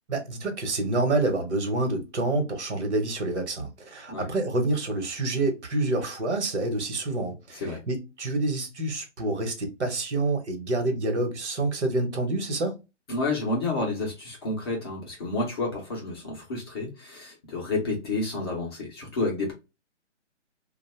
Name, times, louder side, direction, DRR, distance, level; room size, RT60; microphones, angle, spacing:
voice 1, 0.1-12.8, right 2 dB, 65° right, 1.1 m, -27 dB
voice 2, 13.1-19.5, left 2 dB, 20° left, 0.5 m, -30 dB
2.5 x 2.2 x 3.0 m
hypercardioid pair, 150°, 36 cm